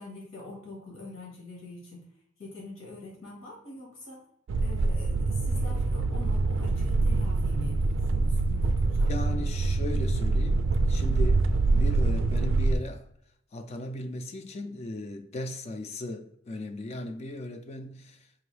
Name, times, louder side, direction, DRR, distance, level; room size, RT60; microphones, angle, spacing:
voice 1, 0.0-2.0 2.4-4.2 4.6-9.1, left 2 dB, 85° left, 1.4 m, -44 dB
sound 1, 4.5-12.7, right 3 dB, 70° right, 0.3 m, -25 dB
voice 2, 9.1-11.5 11.7-13.1 13.5-18.3, left 1 dB, 35° left, 0.3 m, -37 dB
4.6 x 2.6 x 3.2 m
head